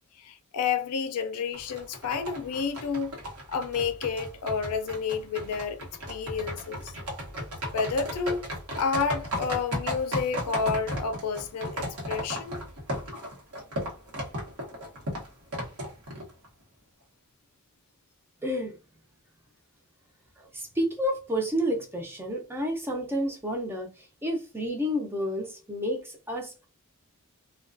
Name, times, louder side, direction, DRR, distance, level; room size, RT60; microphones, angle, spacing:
voice 1, 0.2-3.1 3.5-5.8 6.1-6.9 7.7-8.5 8.8-12.6, left 5 dB, 80° left, 0.4 m, -30 dB
sound 1, 1.5-16.5, equal, 70° right, 0.9 m, -35 dB
voice 2, 18.4-18.8 20.4-26.7, equal, 10° right, 0.5 m, -30 dB
2.3 x 2.2 x 2.5 m
head